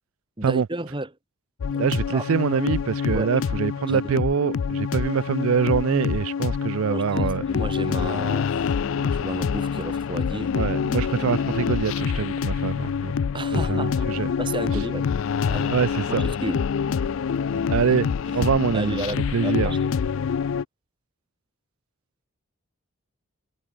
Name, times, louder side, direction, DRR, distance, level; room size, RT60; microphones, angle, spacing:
voice 1, 0.4-1.1 1.7-1.8 2.1-2.2 3.1-3.4 3.9-4.0 6.8-10.6 13.3-15.1 15.5-16.6 17.0-17.6 18.2-18.4 18.7-19.9, right 1 dB, 20° right, 1.7 m, -33 dB
sound 1, 1.6-20.6, left 6 dB, 60° left, 0.4 m, -26 dB
voice 2, 1.8-7.4 10.5-13.1 13.7-14.3 15.7-16.3 17.7-18.1 18.3-19.0 19.3-19.8, right 6 dB, 65° right, 0.4 m, -24 dB
head